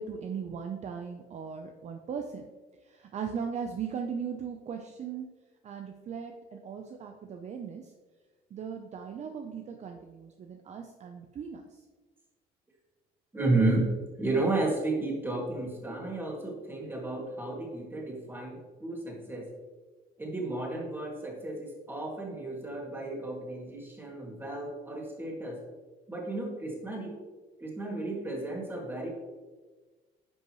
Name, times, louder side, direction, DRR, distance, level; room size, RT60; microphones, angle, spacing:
voice 1, 0.0-2.4 2.8-5.3 5.6-7.9 8.5-11.8, right 6 dB, 40° right, 4 dB, 0.6 m, -38 dB
voice 2, 13.3-13.9 14.2-19.5 20.2-25.6 26.1-27.1 27.6-29.1, right 2 dB, 10° right, -2 dB, 2.2 m, -32 dB
10.0 x 5.4 x 3.1 m, 1.3 s
cardioid pair, 110°, 17 cm